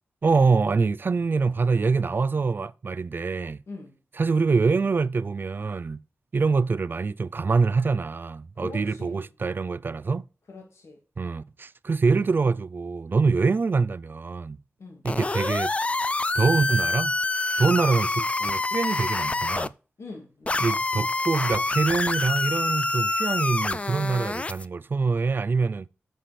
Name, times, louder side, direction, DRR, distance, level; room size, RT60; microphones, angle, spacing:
voice 1, 0.2-3.6 4.1-6.0 6.3-10.2 11.2-14.6 15.0-15.7 16.3-17.1 17.6-19.7 20.6-25.9, right 4 dB, 50° right, 0.4 m, -25 dB
voice 2, 8.6-9.3 10.5-11.0 14.8-15.0 20.0-20.8, left 3 dB, 75° left, 2.0 m, -42 dB
sound 1, 15.0-19.7 20.5-24.6, left 2 dB, 30° left, 0.3 m, -26 dB
7.6 x 5.0 x 4.1 m
wide cardioid pair, 75°, 5 cm